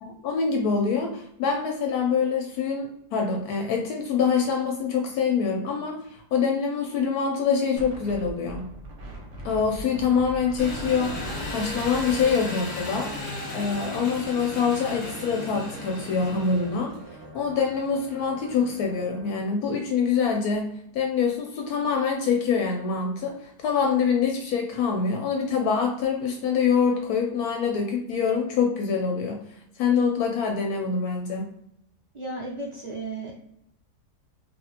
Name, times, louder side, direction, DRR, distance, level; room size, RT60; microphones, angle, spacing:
voice 1, 0.0-8.7 9.4-13.1 13.5-17.0 17.3-29.4 29.8-31.5, left 6 dB, 75° left, 2 dB, 1.0 m, -25 dB
Wind, 7.8-13.3, right 1 dB, 60° right, 0.9 m, -40 dB
Engine, 10.6-17.1, left 2 dB, 40° left, 0.8 m, -35 dB
sound 1, 10.7-19.4, right 2 dB, 85° right, 0.5 m, -44 dB
voice 2, 32.1-33.3, right 2 dB, 30° right, -4 dB, 0.5 m, -34 dB
3.0 x 2.5 x 2.7 m, 0.75 s
omnidirectional pair, 1.7 m